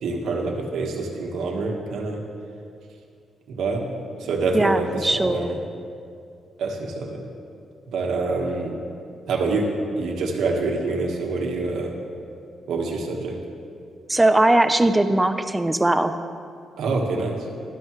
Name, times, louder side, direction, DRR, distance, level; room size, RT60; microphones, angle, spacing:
voice 1, 0.0-2.2 3.5-3.8 4.2-5.6 6.6-7.2 7.9-8.7 9.3-9.7 10.0-11.9 12.7-13.4 16.8-17.4, right 3 dB, 80° right, 1 dB, 1.4 m, -26 dB
voice 2, 4.5-5.5 14.1-16.2, right 1 dB, 10° right, 9 dB, 0.4 m, -20 dB
12.0 x 11.5 x 3.1 m, 2.4 s
cardioid pair, 125°, 0 cm